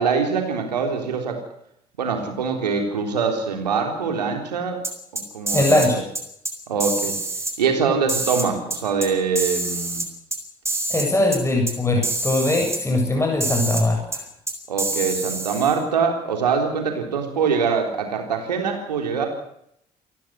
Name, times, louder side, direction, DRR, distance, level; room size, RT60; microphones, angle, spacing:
voice 1, 0.0-1.4 2.0-4.8 5.1-6.0 6.7-7.1 7.6-10.0 14.7-19.3, right 5 dB, 80° right, 4 dB, 3.8 m, -23 dB
sound 1, 4.8-5.9 6.2-6.5 6.8-7.5 8.1-9.1 9.4-10.4 10.7-11.1 11.3-11.4 11.7-11.8 12.0-12.8 13.4-13.8 14.1-14.2 14.5-15.8, right 2 dB, 15° right, 6.8 m, -26 dB
voice 2, 5.5-6.0 10.9-14.2, left 2 dB, 15° left, 2 dB, 7.6 m, -21 dB
28.5 x 15.0 x 7.8 m, 0.73 s
figure-of-eight pair, 50°, 21 cm